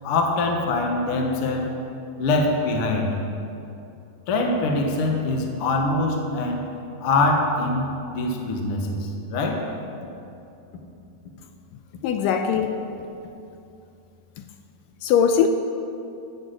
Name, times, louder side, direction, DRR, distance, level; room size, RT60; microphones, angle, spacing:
voice 1, 0.0-1.7 2.2-3.2 4.3-6.7 7.0-9.7, left 2 dB, 55° left, 2 dB, 1.7 m, -23 dB
voice 2, 12.0-12.9 14.4-14.5 15.0-15.5, left 7 dB, 80° left, 6 dB, 2.2 m, -21 dB
14.0 x 6.4 x 7.9 m, 2.7 s
omnidirectional pair, 4.0 m